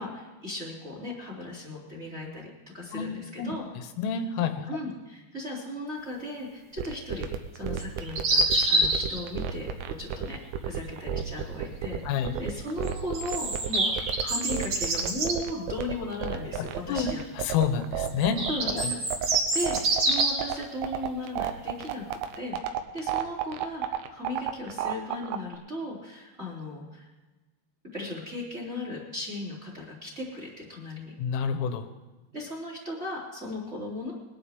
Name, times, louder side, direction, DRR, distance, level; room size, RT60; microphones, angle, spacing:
voice 1, 0.0-3.6 4.7-7.3 7.5-10.4 10.6-17.2 18.5-19.0 19.5-27.1 27.9-31.1 32.3-34.1, left 1 dB, 15° right, -2 dB, 2.6 m, -37 dB
voice 2, 2.9-3.5 4.0-4.6 12.1-12.3 16.9-18.4 18.8-18.9 31.2-31.9, left 7 dB, 90° left, 7 dB, 3.7 m, -28 dB
sound 1, 6.8-25.5, right 10 dB, 80° right, 3.2 m, -31 dB
sound 2, 7.8-9.2 12.8-15.4 18.1-20.5, right 2 dB, 45° right, 3.8 m, -26 dB
21.5 x 11.5 x 3.6 m, 1.2 s
omnidirectional pair, 5.7 m